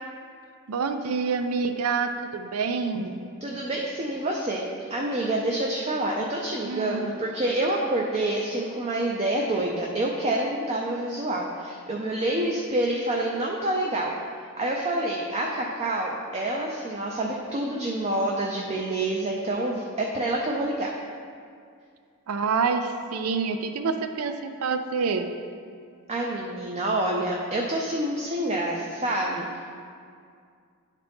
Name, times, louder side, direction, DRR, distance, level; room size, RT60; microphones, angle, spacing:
voice 1, 0.7-3.3 6.7-7.2 22.3-25.3, right 5 dB, 80° right, 8 dB, 0.4 m, -27 dB
voice 2, 3.4-4.6 4.9-14.1 14.6-20.9 26.1-29.7, right 1 dB, 30° right, -1 dB, 0.5 m, -27 dB
10.5 x 4.1 x 3.5 m, 2.2 s
head